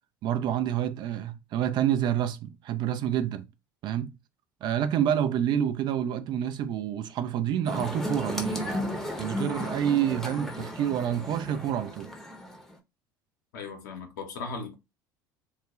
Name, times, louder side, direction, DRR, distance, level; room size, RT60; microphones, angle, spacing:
voice 1, 0.2-3.5 3.8-4.2 4.6-8.8 9.2-12.1, right 10 dB, 45° right, 0.4 m, -28 dB
sound 1, 7.7-12.7, left 1 dB, 5° left, 0.7 m, -34 dB
voice 2, 13.5-14.7, left 4 dB, 70° left, 0.8 m, -37 dB
2.3 x 2.1 x 2.9 m
figure-of-eight pair, 65°, 11 cm